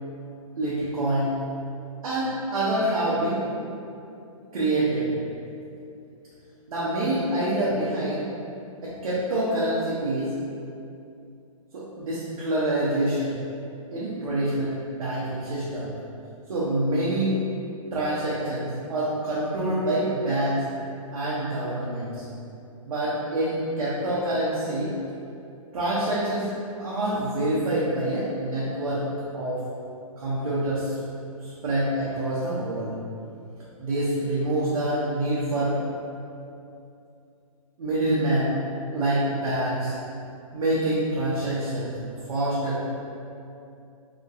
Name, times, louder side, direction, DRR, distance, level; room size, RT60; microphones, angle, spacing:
voice 1, 0.6-1.3 2.0-3.4 4.5-5.1 6.7-8.2 8.8-10.3 11.7-13.4 13.9-15.9 16.5-17.4 17.9-20.6 21.1-22.2 22.8-24.9 25.7-26.5 26.8-29.0 29.3-29.6 30.2-31.0 31.4-32.9 33.8-35.8 37.8-38.5 38.9-39.9 40.5-41.9 42.3-42.9, right 1 dB, 70° right, -8 dB, 0.6 m, -26 dB
2.8 x 2.6 x 2.4 m, 2.6 s
hypercardioid pair, 145°, 18 cm